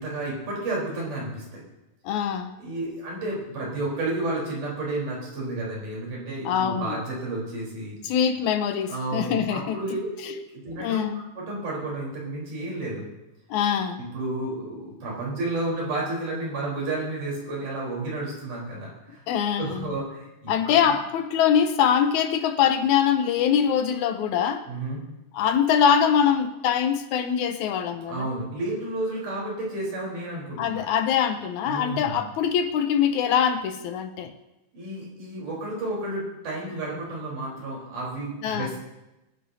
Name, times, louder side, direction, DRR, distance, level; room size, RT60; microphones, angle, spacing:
voice 1, 0.0-1.6 2.6-8.0 8.9-11.0 11.4-13.0 14.0-19.2 19.6-21.0 24.7-25.0 28.1-30.8 31.7-32.3 34.7-38.8, right 2 dB, 75° right, -4 dB, 5.5 m, -31 dB
voice 2, 2.0-2.6 6.5-6.9 8.0-9.8 10.2-10.3 10.7-11.2 13.5-14.0 19.3-19.9 20.5-24.7 25.3-28.3 30.6-34.3 38.4-38.7, left 8 dB, 80° left, 8 dB, 2.0 m, -23 dB
23.0 x 10.0 x 2.8 m, 0.97 s
omnidirectional pair, 3.6 m